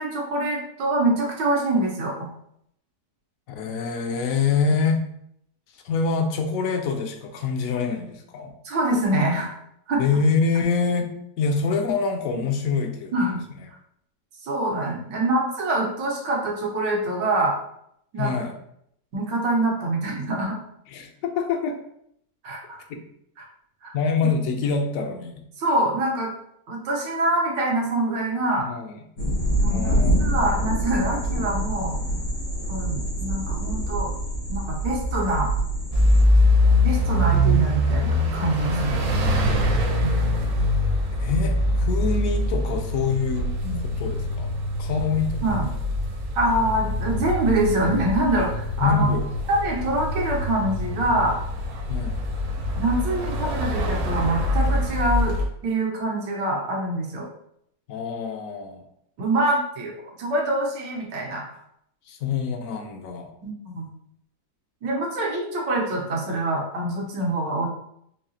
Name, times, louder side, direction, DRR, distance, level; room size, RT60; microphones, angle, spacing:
voice 1, 0.0-2.1 8.6-9.5 9.9-10.0 12.3-12.4 13.1-13.4 14.4-17.5 18.1-18.4 19.1-20.6 22.4-22.8 23.8-23.9 25.6-26.3 26.7-28.7 29.6-29.9 30.2-32.0 32.7-34.1 34.5-35.5 36.8-39.0 40.0-40.3 43.6-43.8 45.4-45.7 46.3-49.1 49.5-51.4 52.8-55.4 55.6-57.3 59.2-59.9 60.2-61.5 63.4-63.9 64.8-67.7, right 1 dB, 90° right, -1 dB, 1.6 m, -25 dB
voice 2, 3.5-5.0 5.8-8.5 10.0-11.1 11.4-13.1 18.2-18.6 20.9-21.8 22.9-23.0 23.9-25.4 28.6-29.0 29.6-30.2 39.0-39.8 41.2-44.5 44.8-45.4 48.8-49.3 51.9-52.2 57.9-58.8 62.1-63.3, left 5 dB, 70° left, 5 dB, 0.8 m, -25 dB
sound 1, 29.2-36.2, right 1 dB, 85° left, 2.0 m, -25 dB
sound 2, 35.9-55.4, left 1 dB, 60° right, 0.9 m, -23 dB
4.7 x 2.7 x 2.7 m, 0.73 s
omnidirectional pair, 1.8 m